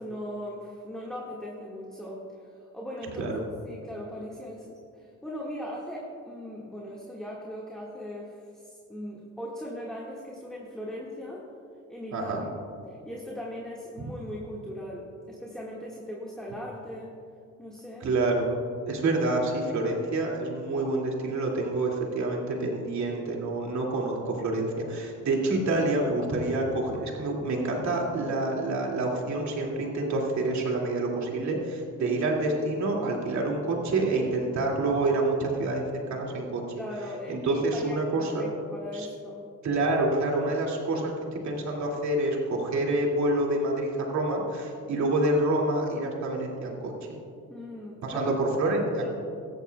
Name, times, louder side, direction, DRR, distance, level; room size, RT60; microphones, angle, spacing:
voice 1, 0.0-2.3 2.6-3.3 3.6-11.4 11.9-12.4 12.9-17.1 17.6-18.1 32.0-32.2 36.8-39.5 47.5-48.3 48.6-49.1, equal, ahead, -4 dB, 1.8 m, -39 dB
voice 2, 12.1-12.4 18.0-18.5 18.9-36.8 37.3-38.5 38.9-39.1 39.6-47.2 48.0-49.1, right 2 dB, 65° right, -1 dB, 2.5 m, -27 dB
17.0 x 14.0 x 2.4 m, 2.4 s
cardioid pair, 90°, 30 cm